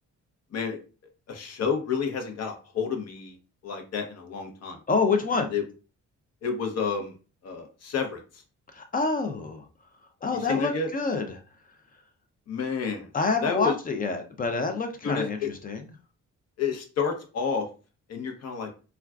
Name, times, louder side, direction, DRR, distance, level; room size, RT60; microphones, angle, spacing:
voice 1, 1.3-3.4 3.6-4.8 5.5-5.6 6.4-7.1 7.4-8.2 10.5-10.9 12.5-13.1 13.4-13.7 15.0-15.5 16.6-17.7 18.1-18.7, left 6 dB, 55° left, 4 dB, 0.7 m, -29 dB
voice 2, 4.9-5.5 8.7-9.6 10.2-11.4 13.1-15.8, left 4 dB, 30° left, 6 dB, 0.4 m, -27 dB
3.5 x 2.3 x 2.3 m, 0.34 s
cardioid pair, 150°, 30 cm